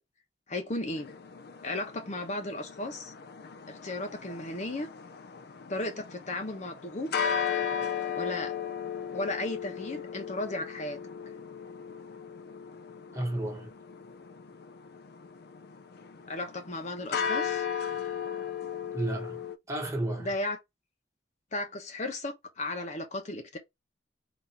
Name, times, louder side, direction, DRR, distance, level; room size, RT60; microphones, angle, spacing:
voice 1, 0.5-1.1 1.6-3.1 3.7-4.9 5.7-7.3 8.1-8.5 9.1-11.0 16.3-17.7 20.2-20.6 21.5-23.6, left 2 dB, 40° left, 0.9 m, -35 dB
sound 1, 0.9-19.6, left 7 dB, 60° left, 0.5 m, -36 dB
voice 2, 13.1-13.7 18.9-19.4 19.7-20.3, right 1 dB, 15° right, 1.4 m, -32 dB
4.1 x 2.6 x 4.5 m
head